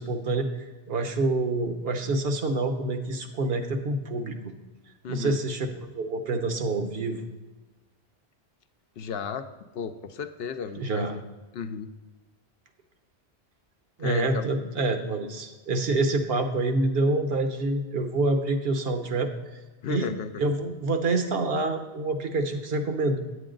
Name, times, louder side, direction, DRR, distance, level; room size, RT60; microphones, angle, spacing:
voice 1, 0.0-4.5 5.1-5.7 5.9-7.2 10.8-11.2 14.0-19.6 19.9-20.1 20.4-23.2, right 2 dB, 65° right, 6 dB, 1.1 m, -27 dB
voice 2, 5.0-5.4 9.0-9.5 9.7-11.2 11.5-11.9 14.0-14.5 19.8-20.4, left 6 dB, 70° left, 8 dB, 0.8 m, -34 dB
8.6 x 8.1 x 3.8 m, 1.2 s
omnidirectional pair, 1.1 m